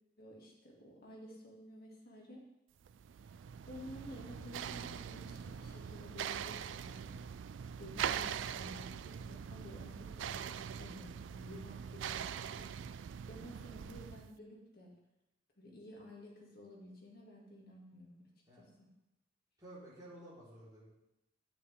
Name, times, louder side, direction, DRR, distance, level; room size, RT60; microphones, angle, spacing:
voice 1, 0.2-2.4 3.7-7.2 7.8-12.7 13.3-14.9 15.6-18.2 18.6-18.9, equal, 55° left, -2 dB, 2.3 m, -52 dB
sound 1, 2.8-14.3, right 8 dB, 80° right, 0.3 m, -42 dB
voice 2, 19.6-20.9, right 1 dB, 20° right, -9 dB, 4.1 m, -53 dB
9.7 x 8.9 x 3.6 m, 0.90 s
head